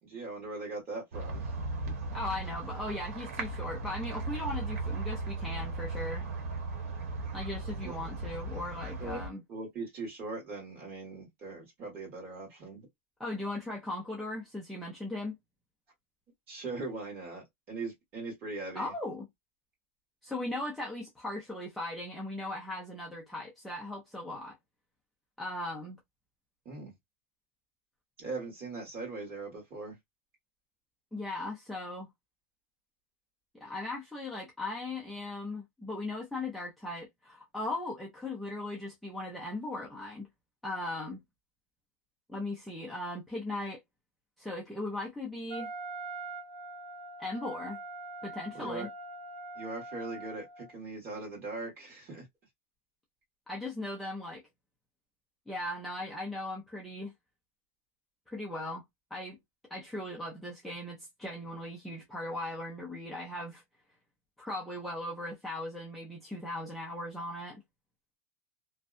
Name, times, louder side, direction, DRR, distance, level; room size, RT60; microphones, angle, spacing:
voice 1, 0.0-1.5 1.8-1.9 7.8-7.9 9.0-9.2 9.5-12.9 16.5-18.9 26.6-26.9 28.2-30.0 48.5-48.9 49.5-52.3, right 3 dB, 25° right, 1.4 m, -40 dB
sound 1, 1.1-9.3, right 3 dB, 85° right, 0.9 m, -37 dB
voice 2, 2.1-6.2 7.3-9.4 13.2-15.4 18.7-19.3 20.2-24.6 25.4-26.0 31.1-32.1 33.5-40.3 40.6-41.2 42.3-43.8 44.4-45.7 47.2-47.8 48.2-48.9 53.5-54.4 55.5-57.1 58.3-58.8 59.1-59.4 59.7-63.6 64.4-67.6, left 2 dB, ahead, 0.4 m, -38 dB
Wind instrument woodwind instrument, 45.5-50.8, right 2 dB, 50° right, 1.3 m, -43 dB
2.6 x 2.1 x 2.4 m
supercardioid pair, 180°, 8 cm